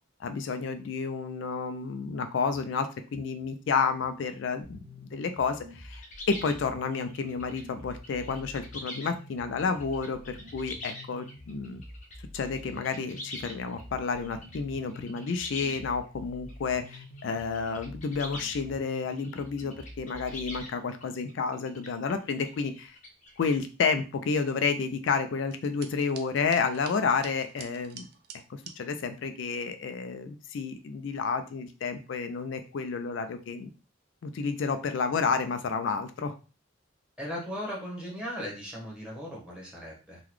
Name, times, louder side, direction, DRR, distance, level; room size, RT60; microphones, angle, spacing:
voice 1, 0.2-4.8 5.1-11.8 12.3-23.0 23.4-28.1 28.5-33.7 34.2-36.3, left 5 dB, 65° left, 8 dB, 0.3 m, -30 dB
sound 1, 4.6-20.6, left 1 dB, 70° right, 0.7 m, -48 dB
sound 2, 5.8-12.2 12.4-13.8 14.2-16.1 16.5-18.6 18.9-23.5, left 1 dB, 35° left, 0.7 m, -44 dB
sound 3, 25.5-28.8, right 7 dB, 50° right, 0.4 m, -48 dB
voice 2, 37.2-40.2, equal, 5° right, -4 dB, 1.1 m, -37 dB
3.8 x 2.2 x 3.0 m, 0.33 s
head